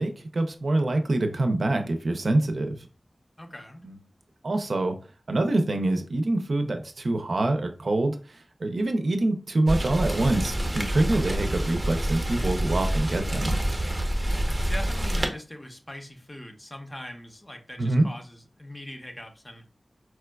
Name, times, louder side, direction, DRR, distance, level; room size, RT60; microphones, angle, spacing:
voice 1, 0.0-2.8 3.8-4.0 4.4-5.0 5.3-13.6 17.8-18.1, right 2 dB, 75° right, 6 dB, 0.4 m, -25 dB
voice 2, 3.4-3.8 14.4-19.6, left 1 dB, 25° left, 4 dB, 0.6 m, -41 dB
Rain, 9.7-15.3, right 1 dB, 20° right, 0.6 m, -27 dB
4.4 x 2.2 x 2.2 m, 0.36 s
wide cardioid pair, 65°, 0 cm